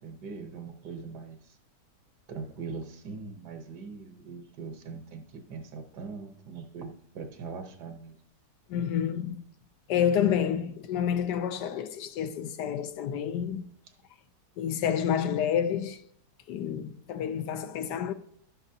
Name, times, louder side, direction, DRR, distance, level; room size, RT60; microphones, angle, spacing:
voice 1, 0.0-1.6 2.3-8.2 17.9-18.0, right 5 dB, 70° right, 1.5 m, -41 dB
voice 2, 8.7-9.4 9.9-13.6 14.6-16.0 16.5-18.1, left 9 dB, 80° left, 1.2 m, -29 dB
12.0 x 8.8 x 2.8 m
omnidirectional pair, 1.8 m